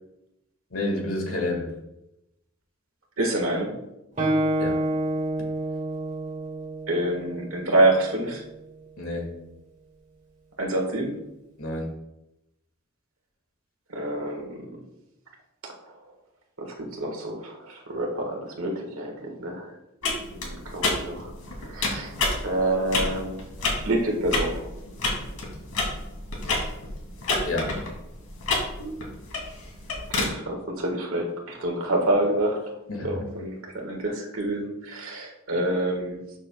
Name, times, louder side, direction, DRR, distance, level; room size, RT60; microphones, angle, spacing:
voice 1, 0.7-1.7 4.6-4.8 9.0-9.3 11.6-11.9 27.4-27.8 32.9-33.2, left 2 dB, 70° left, 3 dB, 1.8 m, -29 dB
voice 2, 3.2-3.7 6.9-8.4 10.6-11.2 13.9-14.8 15.6-15.7 16.6-19.8 20.3-21.3 21.6-22.1 22.4-23.4 23.7-24.7 30.1-32.7 33.0-36.2, right 1 dB, 75° right, 1 dB, 1.6 m, -27 dB
Guitar, 4.2-7.8, right 1 dB, 35° right, 2.6 m, -28 dB
sound 1, 20.0-30.3, left 2 dB, 90° left, 2.4 m, -30 dB
12.0 x 6.4 x 2.3 m, 0.88 s
head